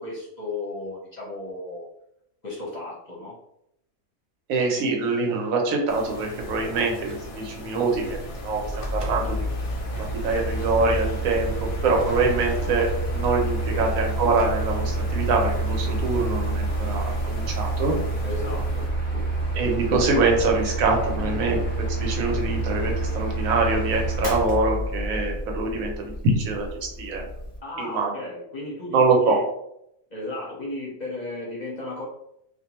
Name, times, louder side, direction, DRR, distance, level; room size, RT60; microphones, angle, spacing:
voice 1, 0.0-1.9 2.4-3.3 13.7-13.9 18.2-18.9 19.1-19.2 21.2-21.3 27.6-29.0 29.2-29.4 30.1-32.0, left 2 dB, 45° left, -6 dB, 0.6 m, -34 dB
voice 2, 4.5-9.5 10.0-18.0 19.5-27.2 27.8-28.1 28.9-29.4, right 3 dB, 85° right, 1 dB, 1.1 m, -24 dB
sound 1, 5.9-18.9, left 1 dB, 90° left, 1.0 m, -40 dB
Drawer open or close, 6.0-7.4 8.5-10.2 11.5-12.8 14.1-15.8, right 2 dB, 50° right, 0.7 m, -42 dB
Mechanical fan, 7.9-27.6, right 2 dB, 10° right, 0.7 m, -28 dB
2.5 x 2.2 x 2.9 m, 0.77 s
omnidirectional pair, 1.4 m